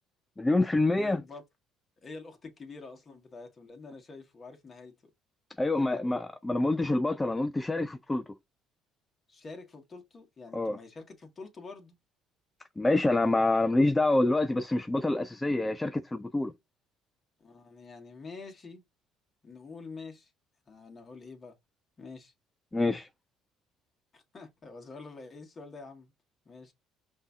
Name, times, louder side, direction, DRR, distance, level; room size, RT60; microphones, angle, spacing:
voice 1, 0.4-1.2 5.6-8.2 10.5-10.8 12.8-16.5 22.7-23.1, left 2 dB, 15° left, 0.4 m, -26 dB
voice 2, 1.0-1.4 2.0-5.0 5.8-6.2 9.3-12.0 17.4-18.8 19.4-20.3 20.7-21.6 22.0-22.3 24.1-26.1 26.5-26.7, left 3 dB, 35° left, 1.7 m, -46 dB
5.3 x 2.8 x 3.6 m
supercardioid pair, 85°, 0 cm